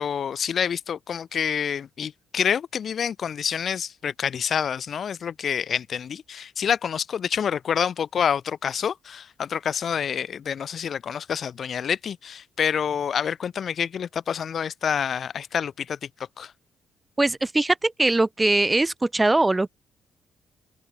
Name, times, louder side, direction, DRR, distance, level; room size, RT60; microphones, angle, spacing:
voice 1, 0.0-16.5, left 7 dB, 55° left, 7.0 m, -27 dB
voice 2, 17.2-19.7, right 2 dB, 15° right, 0.9 m, -21 dB
open air
cardioid pair, 90°, 0 cm